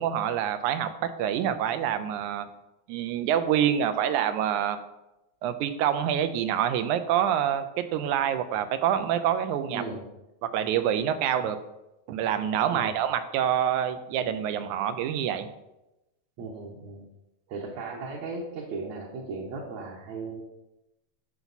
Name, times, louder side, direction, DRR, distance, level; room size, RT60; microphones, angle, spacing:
voice 1, 0.0-2.5 2.9-4.8 5.4-9.8 10.5-11.6 12.1-15.5, right 9 dB, 85° right, 10 dB, 2.1 m, -26 dB
voice 2, 9.7-10.0 11.4-11.5 12.7-12.9 16.4-17.1 17.5-20.4, right 3 dB, 70° right, -2 dB, 2.3 m, -36 dB
11.5 x 5.8 x 4.1 m, 0.95 s
omnidirectional pair, 3.4 m